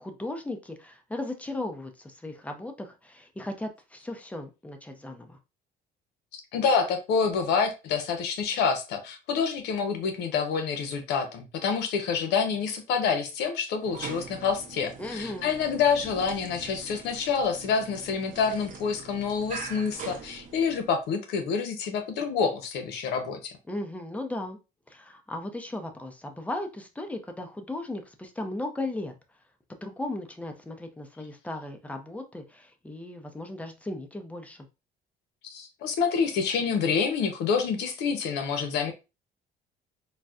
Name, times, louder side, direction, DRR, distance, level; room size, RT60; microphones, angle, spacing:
voice 1, 0.0-5.4 15.0-15.5 23.7-24.6 24.9-29.1 29.8-34.7, left 2 dB, 10° left, 0.6 m, -36 dB
voice 2, 6.3-23.5 35.4-38.9, left 6 dB, 85° left, 0.7 m, -27 dB
sound 1, 13.8-21.0, right 6 dB, 50° right, 0.7 m, -43 dB
4.0 x 2.1 x 2.3 m
cardioid pair, 110°, 17 cm